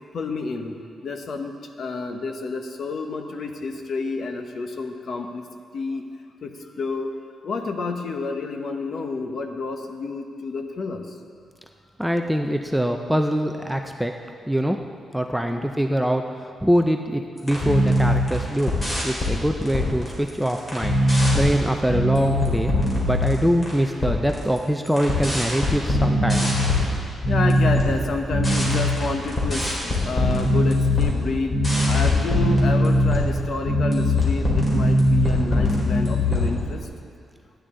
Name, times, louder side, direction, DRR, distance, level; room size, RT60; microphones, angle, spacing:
voice 1, 0.1-5.4 5.7-6.1 6.4-7.1 7.4-11.1 15.4-15.7 22.7-22.8 27.3-31.6 31.8-36.9, left 3 dB, 50° left, 5 dB, 0.9 m, -29 dB
voice 2, 12.0-14.1 14.5-14.8 15.1-18.7 19.0-21.0 21.3-22.7 23.0-26.5, equal, ahead, 4 dB, 0.4 m, -23 dB
sound 1, 17.4-23.7 24.0-24.6 24.8-36.8, left 1 dB, 20° left, 2.7 m, -21 dB
14.0 x 10.0 x 3.7 m, 2.2 s
wide cardioid pair, 160°, 0 cm